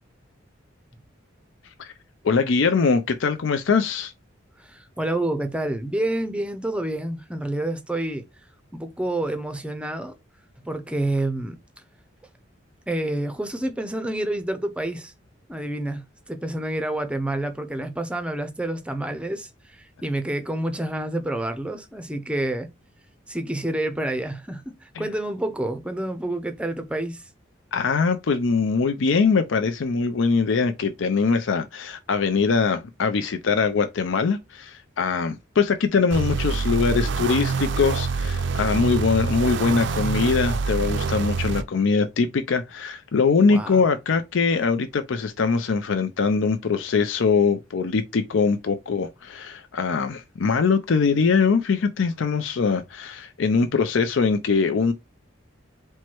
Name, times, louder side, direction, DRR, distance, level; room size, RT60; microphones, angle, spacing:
voice 1, 2.2-4.1 25.0-25.1 27.7-54.9, left 5 dB, 75° left, 0.5 m, -22 dB
voice 2, 4.6-8.2 8.7-10.2 10.6-11.6 12.9-15.1 15.5-22.7 23.3-27.3 43.5-43.8, right 1 dB, 5° right, 0.5 m, -28 dB
sound 1, 36.1-41.6, right 4 dB, 60° right, 0.5 m, -26 dB
4.5 x 2.1 x 4.4 m
head